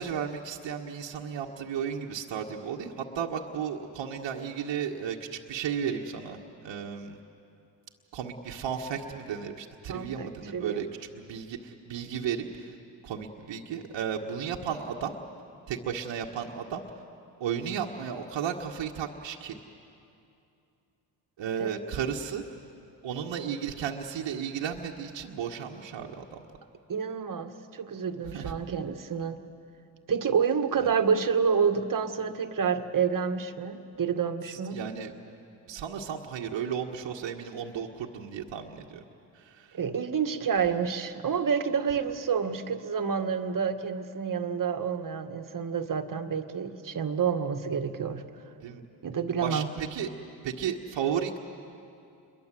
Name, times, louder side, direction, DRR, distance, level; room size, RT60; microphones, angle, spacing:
voice 1, 0.0-7.2 8.1-10.9 11.1-12.8 13.0-15.1 15.7-16.8 17.4-19.6 21.4-22.4 23.0-26.4 28.3-28.5 34.5-35.1 35.7-39.0 39.3-39.8 48.6-48.8 49.4-50.1 50.4-51.4, right 8 dB, 65° right, 0 dB, 1.6 m, -34 dB
voice 2, 9.9-10.9 21.6-21.8 26.9-29.4 30.1-34.8 39.7-48.2 49.0-49.8, right 6 dB, 45° right, 8 dB, 1.8 m, -29 dB
28.5 x 22.5 x 7.7 m, 2.6 s
supercardioid pair, 55°, 47 cm